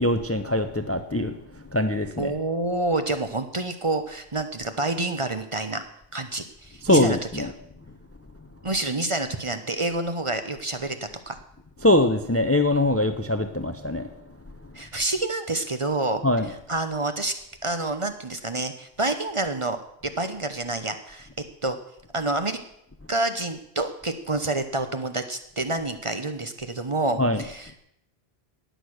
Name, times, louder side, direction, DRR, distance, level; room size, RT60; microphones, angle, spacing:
voice 1, 0.0-2.3 6.8-7.5 11.8-14.1 16.2-16.5 27.2-27.5, left 1 dB, 15° left, 9 dB, 0.6 m, -23 dB
voice 2, 2.2-5.8 6.1-7.5 8.6-11.0 11.3-11.4 14.7-16.2 16.7-17.3 17.6-19.8 20.0-21.3 21.6-21.8 22.1-22.6 23.1-27.8, right 2 dB, 30° right, 8 dB, 0.9 m, -28 dB
18.5 x 6.5 x 6.4 m, 0.76 s
omnidirectional pair, 1.1 m